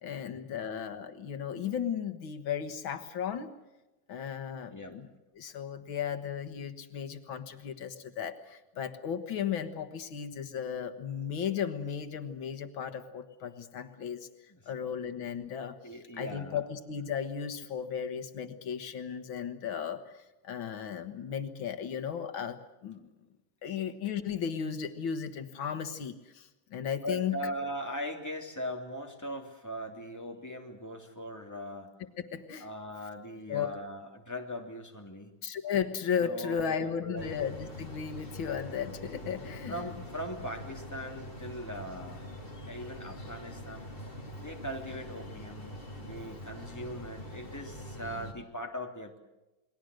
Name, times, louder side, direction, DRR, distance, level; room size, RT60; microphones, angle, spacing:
voice 1, 0.0-3.5 4.1-5.1 5.4-14.3 14.7-15.8 16.2-23.1 23.6-27.4 32.2-32.7 33.5-33.7 35.4-39.8, left 8 dB, 85° left, 9 dB, 2.2 m, -35 dB
voice 2, 4.7-5.0 14.5-14.6 15.8-16.6 23.7-23.8 24.0-24.1 27.0-31.9 32.6-35.4 36.2-37.3 39.7-42.3 42.7-43.9 44.4-49.2, equal, 10° left, 2 dB, 3.0 m, -40 dB
sound 1, 37.2-48.3, equal, 25° left, 3.6 m, -44 dB
29.0 x 21.0 x 6.5 m, 1.0 s
omnidirectional pair, 2.1 m